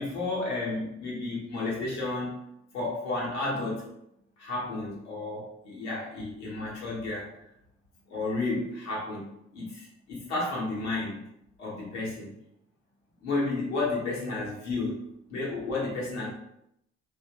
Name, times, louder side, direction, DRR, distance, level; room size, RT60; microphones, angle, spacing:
voice 1, 0.0-2.4 2.7-3.9 4.4-7.3 8.1-11.2 11.6-12.3 13.2-15.0 15.3-16.3, left 2 dB, 90° left, -5 dB, 0.8 m, -32 dB
2.7 x 2.4 x 2.7 m, 0.78 s
hypercardioid pair, 40°, 34 cm